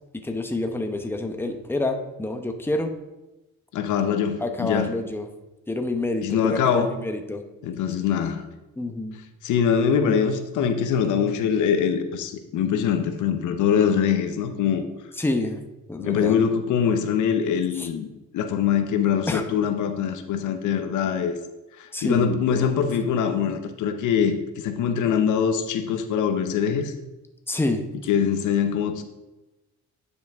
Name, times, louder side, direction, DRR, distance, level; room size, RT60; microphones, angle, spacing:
voice 1, 0.2-2.9 4.4-5.3 5.7-7.4 8.8-9.1 10.0-10.2 15.2-15.6 15.9-16.4 17.8-17.9 19.3-19.4 21.9-22.9 27.5-27.8, left 2 dB, 5° left, 5 dB, 0.9 m, -27 dB
voice 2, 3.7-4.9 6.2-6.9 7.6-8.5 9.4-14.9 16.0-18.1 18.3-21.3 21.8-26.9 28.1-29.0, left 7 dB, 80° left, 7 dB, 0.8 m, -23 dB
9.4 x 5.2 x 3.5 m, 1.0 s
cardioid pair, 90°, 30 cm